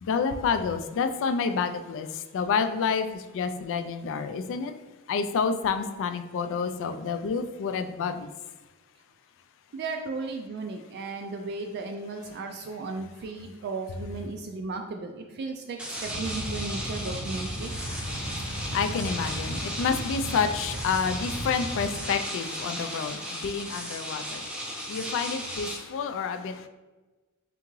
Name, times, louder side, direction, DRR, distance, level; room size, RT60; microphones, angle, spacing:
voice 1, 0.0-4.7 5.1-8.3 17.7-26.7, left 5 dB, 60° left, 9 dB, 0.3 m, -29 dB
voice 2, 9.7-15.1 15.4-15.8 16.2-17.7, right 3 dB, 50° right, 4 dB, 0.3 m, -35 dB
sound 1, 15.8-25.7, equal, 5° right, 0.6 m, -36 dB
sound 2, 16.0-22.0, right 1 dB, 80° right, 0.9 m, -36 dB
3.7 x 3.4 x 3.1 m, 1.2 s
head